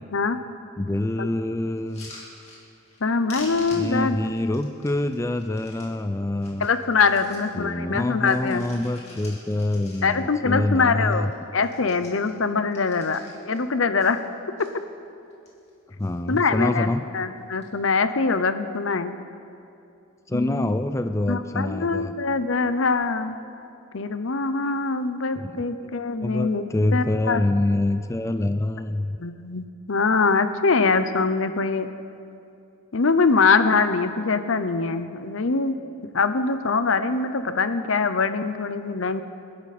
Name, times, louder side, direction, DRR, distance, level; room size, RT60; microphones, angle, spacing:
voice 1, 0.8-2.1 3.7-6.7 7.5-11.3 16.0-17.0 20.3-22.2 25.4-25.7 26.2-29.2, left 1 dB, 15° left, 9 dB, 0.4 m, -26 dB
sound 1, 1.8-3.0 3.3-5.9 6.3-7.5 7.9-10.4 10.7-10.8 11.0-11.3 11.6-13.6 14.0-14.7 15.2-15.7 16.0-16.6 17.4-17.7, left 2 dB, 30° left, 3.1 m, -46 dB
voice 2, 3.0-4.2 6.6-8.6 10.0-14.2 14.6-14.7 16.3-19.1 20.3-20.7 21.3-23.4 23.9-26.7 26.9-27.4 29.2-31.9 32.9-35.8 36.1-39.2, left 4 dB, 70° left, 11 dB, 0.7 m, -23 dB
28.0 x 11.5 x 4.3 m, 2.6 s
head